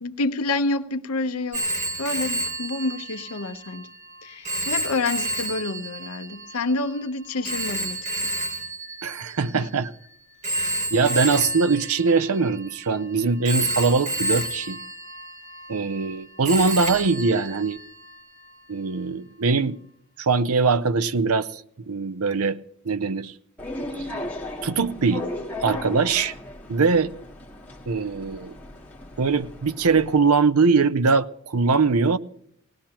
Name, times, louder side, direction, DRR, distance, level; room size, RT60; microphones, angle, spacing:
voice 1, 0.0-1.6 2.0-3.9 4.2-8.0 9.5-9.6, left 3 dB, 85° left, 0.9 m, -28 dB
Telephone, 1.5-9.9 10.4-13.0 13.4-16.2 16.4-18.2, right 1 dB, 35° right, 3.2 m, -30 dB
voice 2, 9.0-9.9 10.6-10.7 10.9-14.8 15.7-17.8 18.7-19.8 20.2-21.6 21.9-22.6 22.8-23.3 24.6-25.3 25.6-26.3 26.7-27.1 27.9-28.6 29.2-32.2, right 4 dB, 85° right, 0.6 m, -22 dB
sound 1, 23.6-30.2, left 2 dB, 5° left, 1.8 m, -36 dB
19.0 x 18.5 x 2.9 m
head